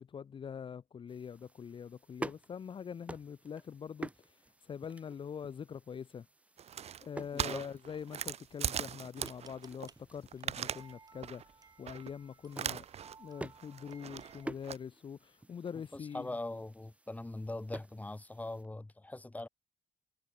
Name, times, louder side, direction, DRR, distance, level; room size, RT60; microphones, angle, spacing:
voice 1, 0.0-6.3 7.0-12.8 13.2-16.3, left 7 dB, 40° left, 0.9 m, -44 dB
sound 1, 1.1-18.7, right 2 dB, 10° right, 0.7 m, -50 dB
sound 2, 6.6-9.9 10.2-10.9 11.2-11.5 11.9-12.1 12.5-13.2 13.5-14.8, right 9 dB, 55° right, 1.3 m, -39 dB
voice 2, 7.3-7.7 15.9-19.5, left 2 dB, 10° left, 2.7 m, -41 dB
sound 3, 9.2-14.5, right 4 dB, 30° right, 3.4 m, -59 dB
cardioid pair, 105°, 13 cm